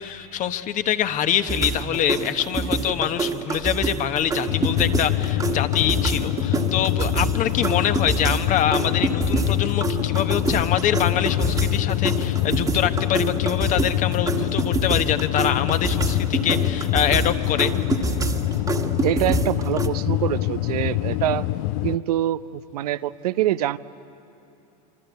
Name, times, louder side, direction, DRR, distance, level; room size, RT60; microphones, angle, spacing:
voice 1, 0.0-17.7, left 10 dB, 40° left, 10 dB, 1.2 m, -25 dB
sound 1, 1.5-19.9, right 4 dB, 15° right, 1.6 m, -28 dB
sound 2, 4.5-22.0, left 16 dB, 60° left, 0.6 m, -25 dB
voice 2, 19.0-21.5 21.8-23.8, right 13 dB, 75° right, 14 dB, 0.7 m, -25 dB
26.0 x 25.5 x 8.3 m, 2.9 s
hypercardioid pair, 95°, 20 cm